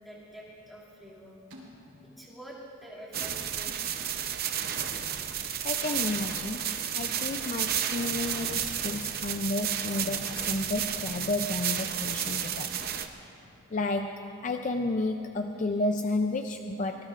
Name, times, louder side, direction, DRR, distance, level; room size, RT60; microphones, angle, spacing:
voice 1, 0.0-1.4 2.0-4.2 15.7-15.8, right 1 dB, ahead, -7 dB, 2.3 m, -47 dB
sound 1, 1.5-2.1 3.6-3.9 6.0-6.6 9.5-9.7 10.8-11.0 12.2-12.5, right 1 dB, 80° right, 3.7 m, -52 dB
sound 2, 3.1-13.1, right 9 dB, 45° right, 0.7 m, -32 dB
voice 2, 5.6-12.9 13.7-17.0, left 2 dB, 35° left, 6 dB, 0.4 m, -32 dB
25.0 x 19.5 x 2.5 m, 3.0 s
head